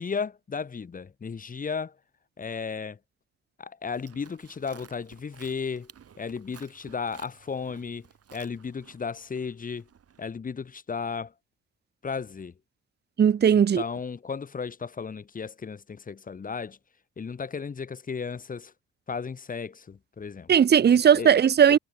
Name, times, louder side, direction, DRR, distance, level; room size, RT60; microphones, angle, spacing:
voice 1, 0.0-2.0 2.4-3.0 3.6-5.9 6.2-9.9 10.2-11.3 12.0-12.5 13.8-16.8 17.2-18.7 19.1-20.5 21.2-21.3 21.7-21.8, left 5 dB, 30° left, 0.9 m, -34 dB
Livestock farm animals working animals, 3.9-10.3, right 8 dB, 50° right, 5.3 m, -54 dB
voice 2, 13.2-13.8 20.5-21.8, right 8 dB, 35° right, 0.7 m, -18 dB
cardioid pair, 90°, 30 cm